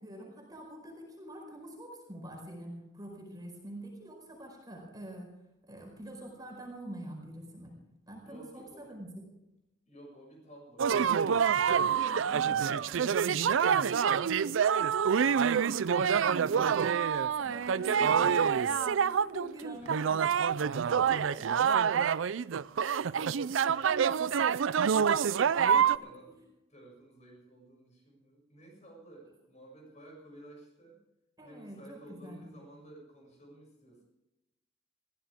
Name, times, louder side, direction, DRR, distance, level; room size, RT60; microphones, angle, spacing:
voice 1, 0.0-5.3 5.7-7.7 8.1-9.3 11.8-12.7 15.4-22.0 25.1-26.1 31.4-32.5, right 1 dB, 20° right, 0 dB, 4.8 m, -46 dB
voice 2, 8.2-9.0 9.9-11.1 11.8-15.5 19.2-19.4 19.7-20.5 20.8-21.1 22.6-24.6 25.6-26.4 26.7-31.0 31.4-34.0, right 1 dB, 40° left, 0 dB, 7.1 m, -53 dB
sound 1, 10.8-26.0, right 7 dB, 80° right, 0.4 m, -27 dB
22.0 x 15.0 x 3.6 m, 0.92 s
head